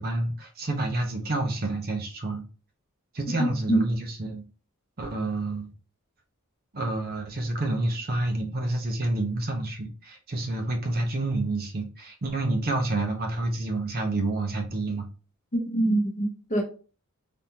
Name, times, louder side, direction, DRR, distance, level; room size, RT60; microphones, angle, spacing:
voice 1, 0.0-2.4 3.1-4.4 5.0-5.7 6.7-15.1, right 2 dB, 45° right, 0.7 m, -29 dB
voice 2, 3.4-3.8 15.5-16.6, right 1 dB, 35° left, 0.8 m, -25 dB
3.5 x 2.6 x 2.8 m
head